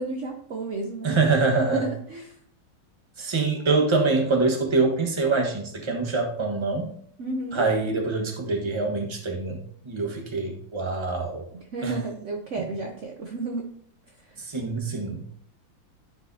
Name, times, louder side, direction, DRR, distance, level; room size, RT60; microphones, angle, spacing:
voice 1, 0.0-1.2 1.6-2.4 7.2-7.7 11.5-13.7 14.1-14.3, right 3 dB, 70° right, 2 dB, 0.7 m, -32 dB
voice 2, 1.0-1.9 3.2-6.9 7.5-11.4 11.8-12.0 14.4-15.2, right 3 dB, 20° right, 2 dB, 0.9 m, -25 dB
13.0 x 5.0 x 2.7 m, 0.64 s
omnidirectional pair, 2.3 m